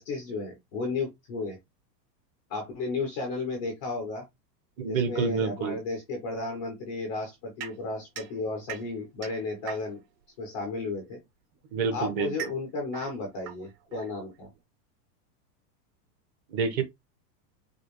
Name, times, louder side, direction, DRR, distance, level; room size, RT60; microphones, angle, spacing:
voice 1, 0.0-1.6 2.5-4.2 4.9-10.0 10.4-11.2 11.9-14.5, left 3 dB, 20° left, 0.3 m, -33 dB
voice 2, 4.8-5.8 11.7-12.5 16.5-16.8, right 5 dB, 25° right, 0.6 m, -28 dB
sound 1, 7.6-10.2 11.2-14.6, right 9 dB, 75° right, 1.5 m, -43 dB
5.0 x 2.2 x 2.9 m
supercardioid pair, 165°, 49 cm